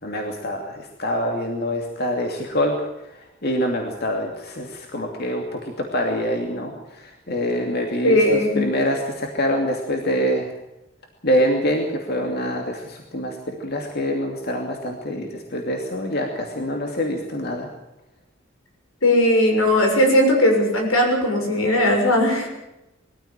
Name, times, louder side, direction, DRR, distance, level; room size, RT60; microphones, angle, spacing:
voice 1, 0.0-2.7 3.1-10.5 11.2-17.7, equal, 50° left, 2 dB, 2.7 m, -25 dB
voice 2, 8.0-8.6 19.0-22.5, left 1 dB, 85° left, 2 dB, 6.7 m, -18 dB
21.5 x 15.0 x 9.0 m, 0.92 s
head